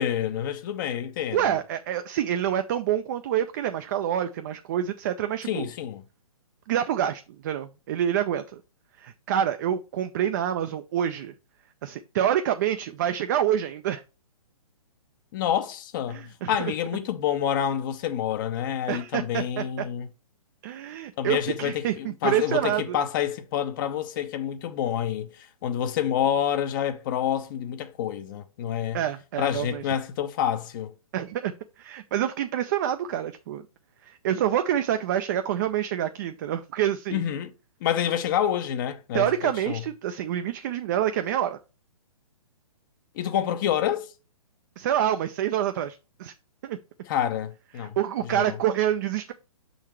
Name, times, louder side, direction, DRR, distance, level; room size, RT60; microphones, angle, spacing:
voice 1, 0.0-1.6 5.4-6.0 15.3-20.1 21.2-29.0 29.4-30.9 37.1-37.5 37.8-39.3 39.7-39.8 43.1-44.1 47.1-48.6, left 9 dB, 35° left, 0.7 m, -28 dB
voice 2, 1.3-5.7 6.7-8.6 9.0-11.3 11.8-14.0 16.1-16.7 18.9-19.6 20.6-23.0 28.9-29.8 31.1-33.6 34.0-37.2 39.1-41.6 44.8-46.3 46.6-46.8 47.8-49.3, right 10 dB, 35° right, 0.4 m, -27 dB
6.2 x 3.9 x 4.4 m
figure-of-eight pair, 130°, 18 cm